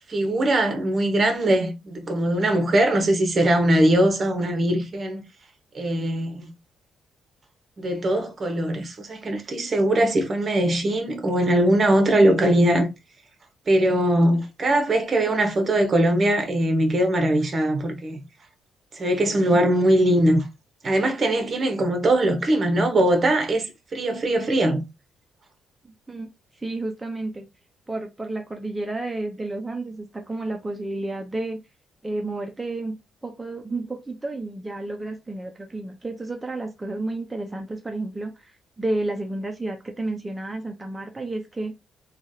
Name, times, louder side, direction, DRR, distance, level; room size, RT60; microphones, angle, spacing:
voice 1, 0.1-5.2 5.7-6.5 7.8-12.9 13.7-18.2 18.9-20.5 20.8-24.8, right 1 dB, 40° right, 1.0 m, -21 dB
voice 2, 26.6-27.5 27.9-31.6 32.0-33.0 33.2-41.7, right 2 dB, 15° right, 0.6 m, -31 dB
3.1 x 2.4 x 2.7 m
cardioid pair, 90°, 0 cm